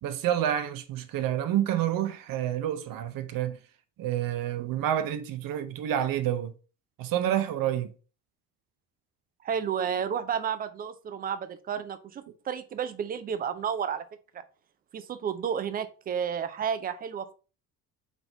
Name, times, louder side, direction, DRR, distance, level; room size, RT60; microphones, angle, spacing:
voice 1, 0.0-3.6 4.0-6.5 7.0-7.9, right 11 dB, 45° right, 0.7 m, -28 dB
voice 2, 9.4-14.0 14.9-17.3, right 7 dB, 20° right, 0.3 m, -31 dB
3.9 x 3.5 x 3.8 m
figure-of-eight pair, 55°, 49 cm